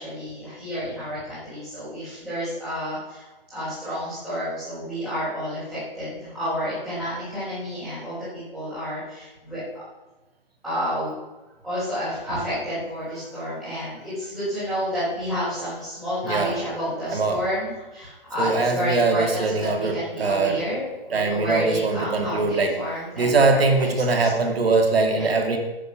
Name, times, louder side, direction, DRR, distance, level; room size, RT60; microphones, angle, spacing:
voice 1, 0.0-9.6 10.6-11.1 11.6-24.5 25.2-25.3, equal, 5° right, -15 dB, 4.7 m, -30 dB
voice 2, 16.2-16.6 17.1-17.4 18.4-20.6 21.1-22.7 23.2-25.6, right 3 dB, 80° right, 4 dB, 2.5 m, -22 dB
10.5 x 9.2 x 5.9 m, 1.1 s
hypercardioid pair, 165°, 30 cm